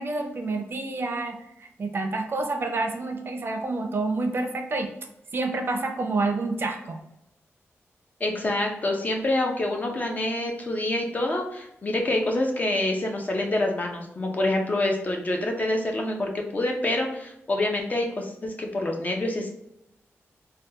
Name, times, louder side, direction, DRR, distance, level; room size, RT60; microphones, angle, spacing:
voice 1, 0.0-4.9 5.3-7.0, right 3 dB, 50° right, 5 dB, 0.5 m, -28 dB
voice 2, 8.2-19.5, left 1 dB, 35° left, 1 dB, 0.6 m, -26 dB
3.4 x 2.2 x 2.7 m, 0.83 s
wide cardioid pair, 115°, 5 cm